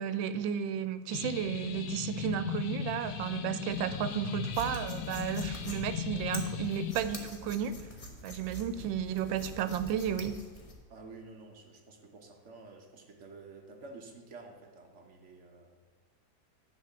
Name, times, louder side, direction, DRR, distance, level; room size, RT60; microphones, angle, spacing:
voice 1, 0.0-7.8 8.2-10.4, right 9 dB, 85° right, 13 dB, 1.3 m, -33 dB
sound 1, 1.1-6.9, left 8 dB, 65° left, 1.2 m, -37 dB
sound 2, 3.7-10.7, left 1 dB, 25° left, 0.9 m, -46 dB
voice 2, 10.9-15.9, right 3 dB, 45° right, 2 dB, 1.2 m, -50 dB
9.7 x 4.2 x 7.2 m, 1.3 s
omnidirectional pair, 2.0 m